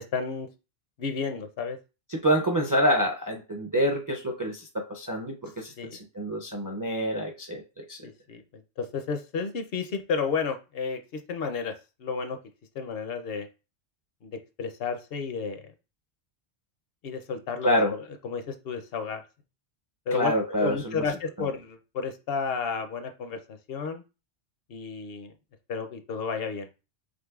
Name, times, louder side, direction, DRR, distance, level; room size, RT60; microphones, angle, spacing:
voice 1, 0.1-0.5 1.0-1.8 5.8-6.0 8.0-8.4 8.8-11.7 12.0-12.4 12.8-13.5 14.2-14.3 14.6-15.6 17.0-19.2 20.1-20.3 20.6-23.4 23.7-24.0 24.7-25.3 25.7-26.7, left 5 dB, 65° left, 6 dB, 0.8 m, -32 dB
voice 2, 2.1-8.0 17.6-17.9 20.1-21.0 21.4-21.5, equal, 30° right, 1 dB, 0.4 m, -27 dB
5.2 x 3.3 x 2.3 m, 0.31 s
omnidirectional pair, 1.1 m